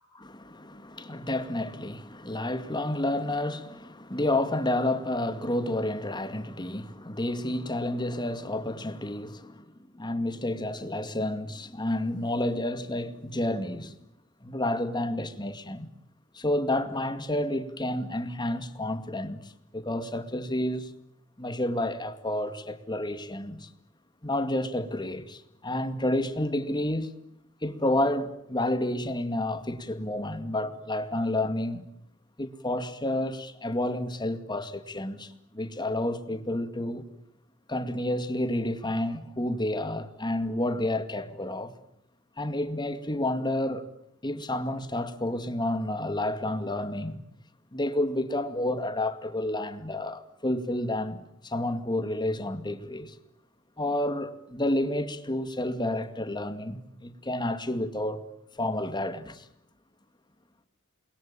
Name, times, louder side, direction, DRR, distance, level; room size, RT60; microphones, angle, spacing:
voice 1, 0.3-14.0 14.4-15.9 16.3-20.9 21.4-23.7 24.2-27.1 27.6-31.9 32.4-37.1 37.7-41.7 42.4-43.8 44.2-47.2 47.7-53.2 53.8-58.3 58.5-59.5, left 1 dB, 20° left, 2.2 m, -30 dB
28.5 x 22.0 x 9.0 m
head